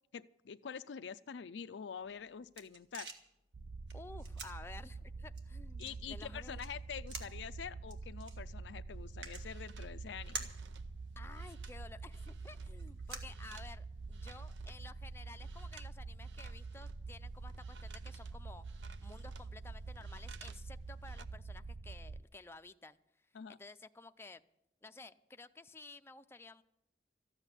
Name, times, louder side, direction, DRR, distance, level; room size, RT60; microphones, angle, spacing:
voice 1, 0.1-3.1 5.8-10.5 23.3-23.6, left 7 dB, 85° left, 11 dB, 0.4 m, -46 dB
sound 1, 2.0-14.1, right 4 dB, 75° right, 1.8 m, -52 dB
sound 2, 3.5-22.2, right 3 dB, 50° right, 0.4 m, -46 dB
voice 2, 3.9-6.6 11.2-18.6 19.0-23.0 23.5-24.4 24.8-26.6, left 3 dB, 15° left, 8 dB, 0.5 m, -53 dB
sound 3, 8.9-12.8 13.0-14.9 15.3-15.9 16.2-20.7 20.9-21.3, right 6 dB, 90° right, 0.6 m, -59 dB
14.0 x 8.0 x 9.9 m, 0.83 s
head